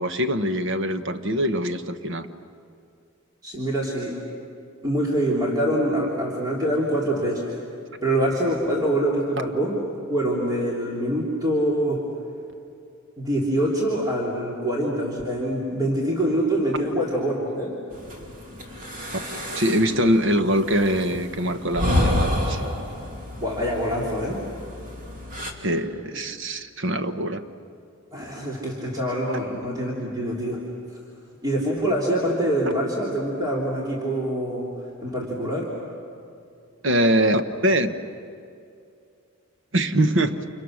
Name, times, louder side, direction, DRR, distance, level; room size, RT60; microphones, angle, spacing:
voice 1, 0.0-2.3 19.5-22.6 25.6-27.4 36.8-37.9 39.7-40.4, right 1 dB, 60° right, 9 dB, 1.1 m, -23 dB
voice 2, 3.4-4.2 4.8-7.6 8.0-9.8 10.1-12.1 13.2-17.7 23.4-24.5 26.1-26.2 28.1-30.6 31.4-34.7 35.0-35.7, right 1 dB, 20° right, -5 dB, 3.1 m, -25 dB
sound 1, 17.9-25.5, left 1 dB, 40° right, 2.9 m, -29 dB
30.0 x 28.5 x 6.4 m, 2.5 s
head